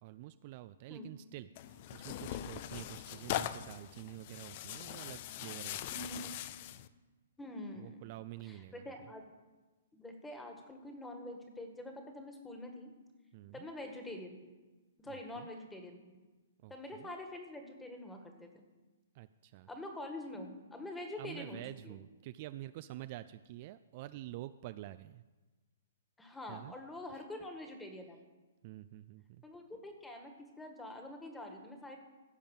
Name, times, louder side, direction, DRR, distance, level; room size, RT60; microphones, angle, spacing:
voice 1, 0.0-5.8 7.8-9.1 13.3-13.7 15.1-15.5 16.6-17.1 19.1-19.7 21.2-25.2 26.5-26.8 27.1-27.2 28.6-29.4, right 15 dB, 45° right, 13 dB, 0.4 m, -48 dB
Tearing, 1.5-6.9, left 12 dB, 45° left, 0.6 m, -41 dB
voice 2, 5.9-6.3 7.4-8.0 8.5-9.2 9.9-12.9 13.5-14.5 15.0-16.2 16.7-18.6 19.7-22.0 26.2-28.2 29.4-32.0, left 1 dB, 5° left, 4 dB, 1.7 m, -46 dB
15.5 x 5.3 x 7.3 m, 1.2 s
hypercardioid pair, 135°, 0 cm